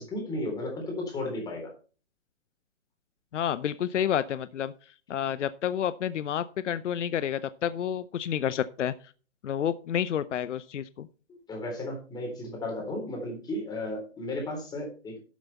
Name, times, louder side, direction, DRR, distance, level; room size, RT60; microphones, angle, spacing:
voice 1, 0.0-1.7 11.5-15.2, left 1 dB, 10° left, 1 dB, 3.7 m, -34 dB
voice 2, 3.3-4.7 5.1-8.9 9.4-11.1, left 9 dB, 75° left, 14 dB, 0.7 m, -29 dB
12.5 x 7.5 x 4.2 m, 0.38 s
hypercardioid pair, 150°, 36 cm